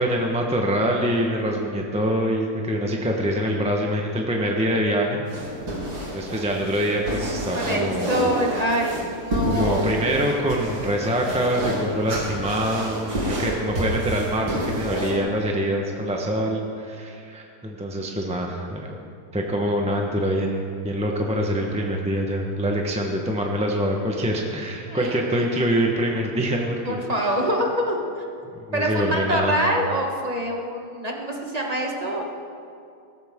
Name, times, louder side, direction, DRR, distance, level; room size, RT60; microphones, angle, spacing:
voice 1, 0.0-5.2 6.1-8.1 9.5-19.0 19.3-27.3 28.7-29.6, equal, 5° right, 0 dB, 0.7 m, -25 dB
sound 1, 5.3-15.2, right 1 dB, 85° right, 3.5 m, -29 dB
voice 2, 7.5-9.9 24.9-25.6 26.8-28.2 28.7-32.2, equal, 25° right, -1 dB, 1.3 m, -25 dB
18.0 x 14.0 x 3.7 m, 2.4 s
omnidirectional pair, 2.1 m